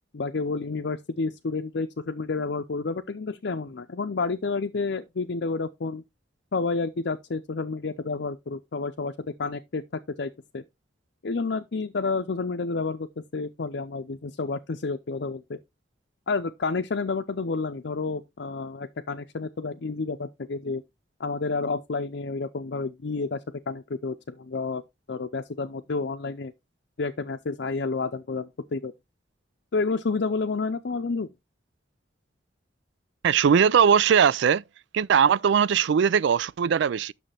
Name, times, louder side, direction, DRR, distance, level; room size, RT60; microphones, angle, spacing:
voice 1, 0.1-6.0 6.5-9.8 10.2-10.6 11.2-15.6 16.3-20.8 21.2-24.8 25.1-26.5 27.0-28.9 29.7-31.3, left 4 dB, 65° left, 0.6 m, -30 dB
voice 2, 33.2-34.6 34.9-37.1, right 7 dB, 70° right, 0.4 m, -20 dB
9.0 x 6.5 x 3.4 m
head